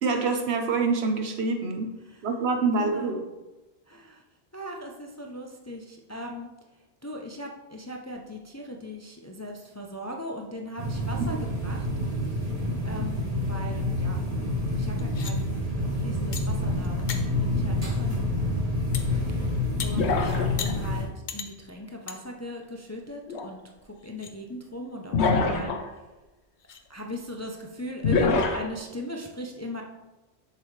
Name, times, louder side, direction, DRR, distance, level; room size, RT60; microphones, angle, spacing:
voice 1, 0.0-1.9 2.2-3.2 11.2-11.4, right 4 dB, 75° right, 5 dB, 1.1 m, -26 dB
voice 2, 2.8-3.3 3.9-4.2 4.5-6.5 7.0-11.9 12.2-12.4 12.8-18.3 19.4-19.5 19.8-25.7 26.9-29.8, equal, 20° left, 1 dB, 0.5 m, -39 dB
sound 1, 10.8-21.0, left 1 dB, 35° right, 1.5 m, -28 dB
sound 2, 15.0-15.3 16.3-16.4 16.8-17.2 18.9-19.1 19.8-19.9 20.6-20.7 21.3-21.5 22.1-22.2 22.6-22.7 23.4-23.5 24.0-24.3 26.0-26.1 26.6-26.8, left 6 dB, 50° left, 0.8 m, -36 dB
sound 3, 19.9-20.9 23.3-23.4 25.1-25.9 28.0-28.6, left 4 dB, 85° left, 1.1 m, -24 dB
7.1 x 6.7 x 3.2 m, 1.1 s
omnidirectional pair, 1.1 m